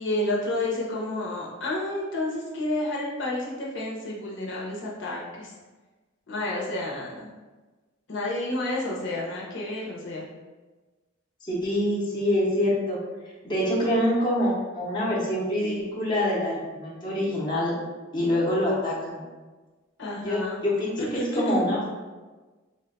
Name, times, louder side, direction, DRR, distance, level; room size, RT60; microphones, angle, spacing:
voice 1, 0.0-5.5 6.3-7.3 8.1-10.3 20.0-20.6 21.1-21.6, left 1 dB, 60° left, -4 dB, 0.8 m, -30 dB
voice 2, 11.4-13.0 13.4-17.7 18.1-19.2 20.2-21.8, left 1 dB, 20° left, -6 dB, 0.8 m, -25 dB
3.5 x 2.2 x 3.8 m, 1.3 s
head